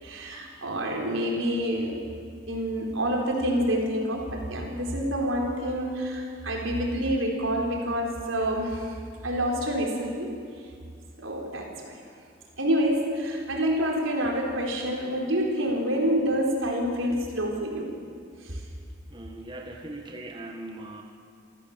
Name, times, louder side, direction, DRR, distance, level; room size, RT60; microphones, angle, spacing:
voice 1, 0.0-2.1 2.5-8.9 9.2-10.3 11.2-12.0 12.6-17.9 18.4-18.6, equal, 90° right, 0 dB, 4.2 m, -27 dB
voice 2, 19.1-21.0, right 1 dB, 25° right, 2 dB, 1.5 m, -40 dB
27.5 x 14.5 x 7.4 m, 2.2 s
head